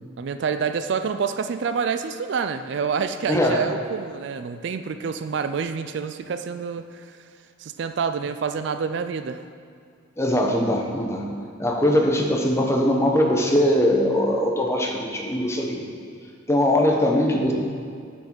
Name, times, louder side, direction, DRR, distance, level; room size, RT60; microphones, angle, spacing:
voice 1, 0.2-7.2 7.6-9.4, right 6 dB, 55° right, 10 dB, 0.3 m, -27 dB
voice 2, 3.3-3.6 10.2-11.2 11.6-15.8 16.5-17.5, left 1 dB, 15° left, 1 dB, 0.8 m, -21 dB
8.4 x 6.1 x 6.1 m, 2.3 s
head